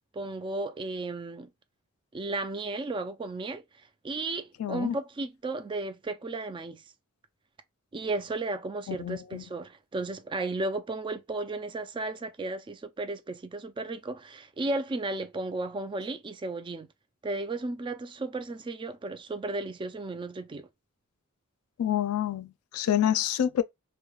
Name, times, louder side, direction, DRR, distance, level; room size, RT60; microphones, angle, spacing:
voice 1, 0.1-1.5 2.1-3.6 4.0-6.8 7.9-16.9 17.2-20.7, right 2 dB, 25° right, 0.3 m, -34 dB
voice 2, 4.6-5.0 8.9-9.4 21.8-23.6, left 10 dB, 90° left, 0.3 m, -28 dB
3.0 x 2.1 x 2.3 m
head